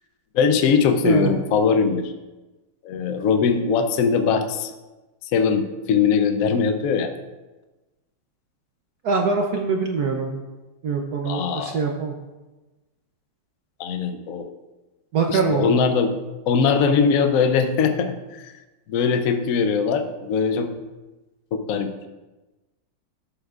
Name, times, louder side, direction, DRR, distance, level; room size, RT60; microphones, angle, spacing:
voice 1, 0.3-2.1 2.8-4.7 5.3-7.1 11.2-11.8 13.8-14.5 15.3-16.1 16.5-18.5 18.9-20.7 21.5-22.1, left 6 dB, 90° left, 7 dB, 0.7 m, -21 dB
voice 2, 9.0-10.3 10.8-12.1 15.1-15.7, right 4 dB, 65° right, 2 dB, 1.0 m, -23 dB
12.5 x 7.0 x 2.4 m, 1.1 s
omnidirectional pair, 2.3 m